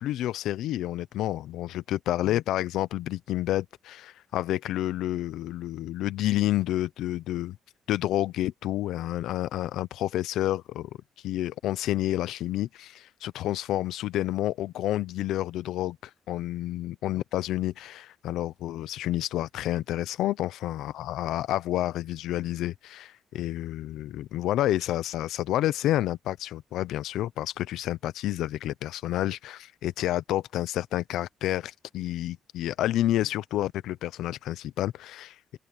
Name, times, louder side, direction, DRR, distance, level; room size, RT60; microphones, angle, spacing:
voice 1, 0.0-7.6 7.9-10.9 11.2-16.0 16.3-35.6, left 14 dB, 85° left, 0.8 m, -29 dB
open air
cardioid pair, 90°, 0 cm